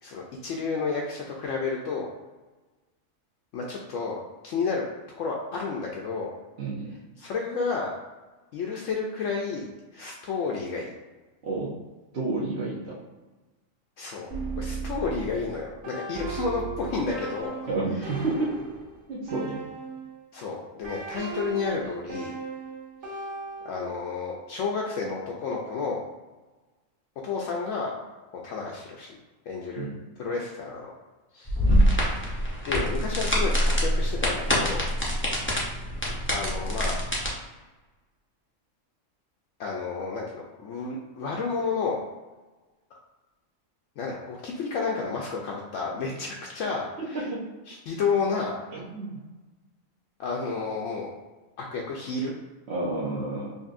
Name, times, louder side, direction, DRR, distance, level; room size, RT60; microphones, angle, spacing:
voice 1, 0.0-2.1 3.5-4.8 5.2-6.3 7.2-7.9 8.5-9.7 9.9-10.9 14.0-14.3 14.6-17.7 20.3-22.4 23.6-26.0 27.2-27.9 28.3-29.2 29.5-29.9 30.2-30.9 31.3-31.6 32.7-34.9 35.4-35.5 36.3-37.0 39.6-42.0 42.9-43.0 44.0-47.2 47.7-48.7 50.2-51.1 51.6-52.3, left 4 dB, 75° left, -2 dB, 0.9 m, -31 dB
voice 2, 6.6-7.0 11.4-11.7 12.1-12.9 17.7-18.5 19.1-19.6 29.8-30.0 31.6-31.8 47.1-47.4 48.7-49.2 52.7-53.6, right 3 dB, 60° right, -7 dB, 1.0 m, -30 dB
sound 1, 14.3-20.2 20.8-24.0, right 4 dB, 80° right, 1.7 m, -37 dB
sound 2, 31.5-37.3, equal, 15° left, 0.6 m, -25 dB
5.3 x 2.6 x 2.5 m, 1.2 s
omnidirectional pair, 1.3 m